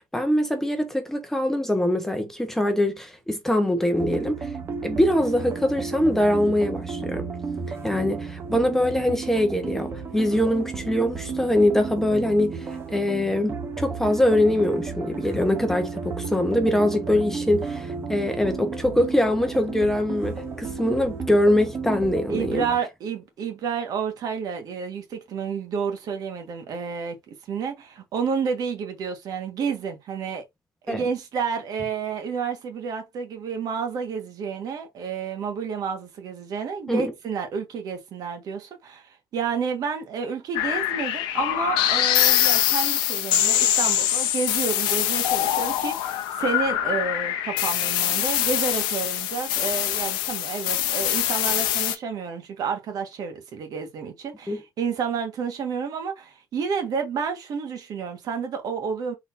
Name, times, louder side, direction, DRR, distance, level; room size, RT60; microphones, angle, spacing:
voice 1, 0.0-4.5 4.8-7.3 7.7-22.7 30.9-31.0 36.9-37.0 54.5-54.6, left 1 dB, 5° left, 0.9 m, -23 dB
sound 1, 3.9-22.8, right 5 dB, 35° right, 1.2 m, -33 dB
voice 2, 22.3-30.4 30.9-59.1, right 6 dB, 55° right, 1.5 m, -30 dB
sound 2, 40.5-51.9, left 12 dB, 85° left, 0.8 m, -24 dB
4.1 x 3.9 x 2.6 m
cardioid pair, 115°, 8 cm